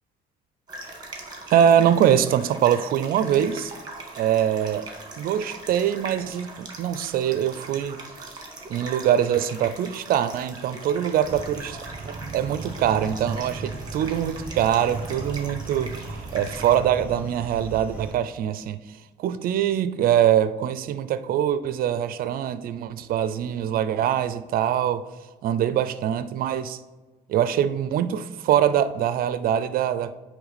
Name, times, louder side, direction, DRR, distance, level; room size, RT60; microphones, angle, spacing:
sound 1, 0.7-16.8, right 2 dB, 25° right, 1.5 m, -41 dB
voice 1, 1.5-3.7 4.2-4.9 5.2-8.0 8.7-11.8 12.1-18.8 19.2-25.0 25.4-26.8 27.3-30.1, right 10 dB, 60° right, 0.5 m, -23 dB
sound 2, 11.2-18.1, right 3 dB, 10° right, 1.6 m, -37 dB
9.2 x 3.2 x 4.1 m
cardioid pair, 110°, 17 cm